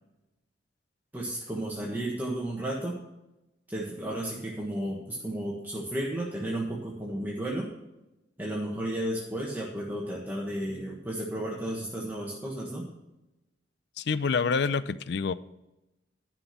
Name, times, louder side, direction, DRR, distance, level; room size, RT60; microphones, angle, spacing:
voice 1, 1.1-3.0 3.7-7.7 8.4-12.9, right 1 dB, 10° right, -4 dB, 1.4 m, -33 dB
voice 2, 14.0-15.3, left 5 dB, 65° left, 16 dB, 0.5 m, -27 dB
11.5 x 5.9 x 5.9 m, 0.95 s
head